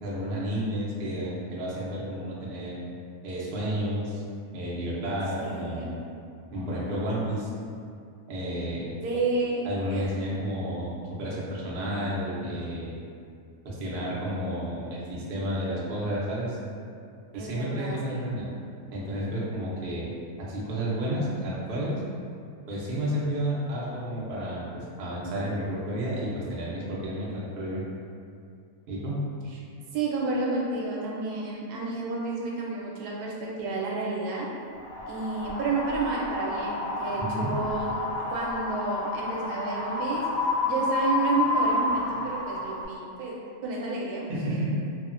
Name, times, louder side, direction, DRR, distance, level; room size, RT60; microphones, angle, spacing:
voice 1, 0.0-2.8 3.2-4.2 4.5-6.0 6.5-7.5 8.3-8.9 9.6-10.9 11.2-13.0 13.6-16.6 17.3-18.5 18.9-20.1 20.4-22.0 22.7-27.8 28.9-29.2 37.2-37.5 44.3-44.7, equal, 60° right, -7 dB, 0.6 m, -31 dB
voice 2, 5.4-5.9 9.0-9.6 9.9-10.1 17.3-18.3 29.9-33.3 33.6-34.5 35.1-38.0 38.3-40.2 40.6-43.3 43.6-44.6, right 3 dB, 80° right, -3 dB, 1.1 m, -30 dB
Wind, 34.7-42.8, left 2 dB, 80° left, 1.1 m, -30 dB
2.9 x 2.0 x 2.4 m, 2.4 s
omnidirectional pair, 1.7 m